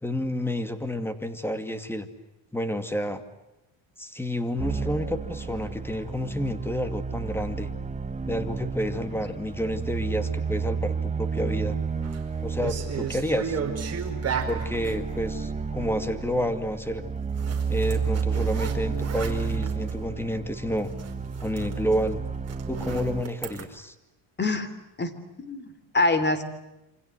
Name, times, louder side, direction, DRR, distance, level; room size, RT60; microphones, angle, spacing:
voice 1, 0.0-2.1 2.5-3.2 4.0-7.7 8.3-11.8 12.4-13.6 14.5-17.0 17.7-20.9 21.4-22.2 22.7-23.9, equal, 5° left, 9 dB, 2.4 m, -29 dB
sound 1, 4.6-23.2, right 5 dB, 15° right, 1.0 m, -31 dB
sound 2, 11.8-12.2 12.6-15.0 17.4-20.0 20.4-20.5 20.8-23.6, right 6 dB, 30° right, 4.9 m, -35 dB
voice 2, 25.4-26.4, left 2 dB, 20° left, 13 dB, 3.3 m, -25 dB
28.0 x 25.5 x 7.9 m, 0.92 s
cardioid pair, 130°, 48 cm